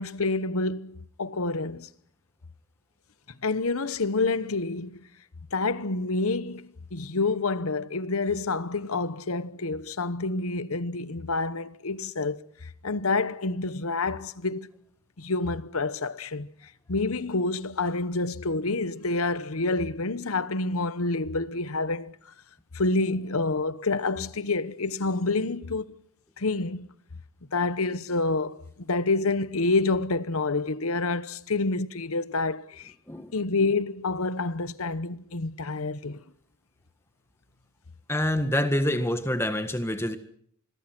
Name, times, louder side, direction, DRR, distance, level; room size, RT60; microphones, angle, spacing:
voice 1, 0.0-1.9 3.4-5.1 5.5-14.7 15.2-16.5 16.9-22.1 22.7-25.9 26.4-26.9 27.5-32.9 33.3-36.2, left 3 dB, 80° left, 1.0 m, -28 dB
voice 2, 38.1-40.2, left 1 dB, 10° left, 1.6 m, -26 dB
26.0 x 21.5 x 6.1 m
head